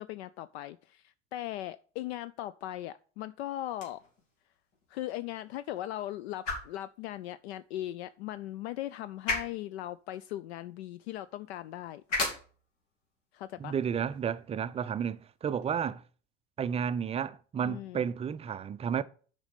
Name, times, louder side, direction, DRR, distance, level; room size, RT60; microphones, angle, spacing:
voice 1, 0.0-4.0 4.9-12.0 13.3-13.8 17.6-18.1, left 14 dB, 60° left, 0.5 m, -39 dB
sound 1, 3.6-15.7, left 3 dB, 80° left, 2.8 m, -41 dB
voice 2, 13.6-16.0 16.6-19.0, right 7 dB, 15° right, 0.4 m, -32 dB
7.1 x 5.3 x 6.6 m
hypercardioid pair, 85°, 36 cm